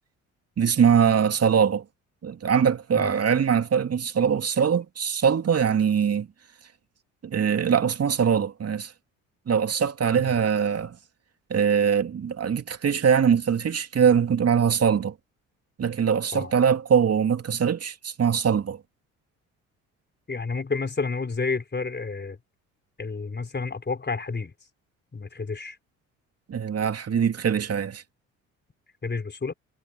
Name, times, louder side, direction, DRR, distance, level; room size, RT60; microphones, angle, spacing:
voice 1, 0.6-1.8 2.2-6.3 7.2-8.9 9.5-11.0 11.5-15.1 15.8-18.8 26.5-28.0, right 7 dB, 40° right, 2.7 m, -22 dB
voice 2, 20.3-22.4 23.0-24.5 25.1-25.8 29.0-29.5, left 4 dB, 25° left, 5.1 m, -30 dB
hypercardioid pair, 55°, 38 cm